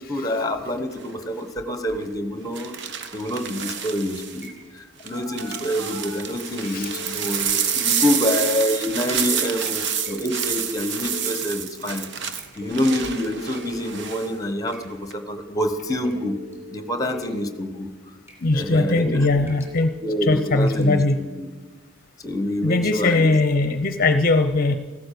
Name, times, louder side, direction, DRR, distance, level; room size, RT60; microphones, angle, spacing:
voice 1, 0.1-2.7 3.1-12.0 12.5-16.4 16.7-17.9 18.5-19.3 20.0-21.5 22.2-23.3, left 1 dB, 20° left, 9 dB, 1.2 m, -26 dB
sound 1, 0.9-1.2 2.6-4.5 5.0-14.3 14.7-15.1, right 8 dB, 60° right, 1.1 m, -28 dB
sound 2, 3.3-3.7 4.4-4.7 5.5-5.8 6.6-6.9 7.7-8.1 8.9-9.4 10.1-10.4 11.2-11.8 12.4-12.7 13.5-14.2 14.7-15.4 15.9-16.3 16.5-16.8 17.1-17.7 18.3-18.5 18.9-19.1 19.4-19.8 20.1-20.2 20.6-20.9, right 1 dB, 15° right, 4.1 m, -50 dB
Telephone, 5.1-6.1 6.6-8.1 9.6-11.1 12.6-14.1 15.6-17.1 18.6-20.1, left 1 dB, 80° right, 4.3 m, -41 dB
voice 2, 18.4-19.9 20.2-21.2 22.6-24.7, left 2 dB, 45° left, 9 dB, 0.7 m, -20 dB
15.0 x 12.5 x 6.8 m, 1.4 s
head